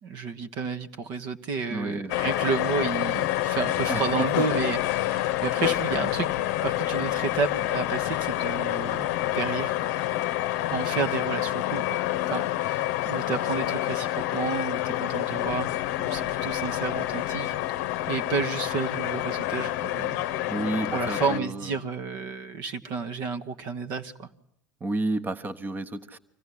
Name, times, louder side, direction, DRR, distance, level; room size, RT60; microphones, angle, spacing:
voice 1, 0.0-6.3 6.6-9.1 9.3-9.7 10.7-12.0 12.3-15.7 16.0-17.5 18.1-20.2 20.9-24.3, right 5 dB, 45° right, 7 dB, 1.2 m, -31 dB
voice 2, 1.7-2.1 3.9-4.3 20.5-21.7 24.8-26.2, right 2 dB, 20° right, 11 dB, 1.2 m, -31 dB
sound 1, 2.1-21.4, left 15 dB, 55° left, 0.8 m, -28 dB
25.0 x 16.5 x 9.5 m, 0.76 s
figure-of-eight pair, 70°, 10 cm